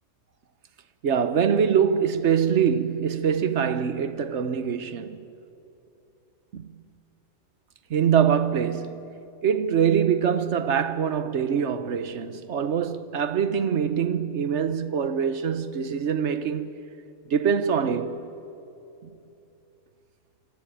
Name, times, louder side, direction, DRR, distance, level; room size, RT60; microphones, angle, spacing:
voice 1, 1.0-5.2 6.5-6.7 7.9-9.1 9.4-16.8 17.3-18.2, right 7 dB, 65° right, 1.2 m, -24 dB
27.0 x 16.5 x 9.0 m
omnidirectional pair, 1.3 m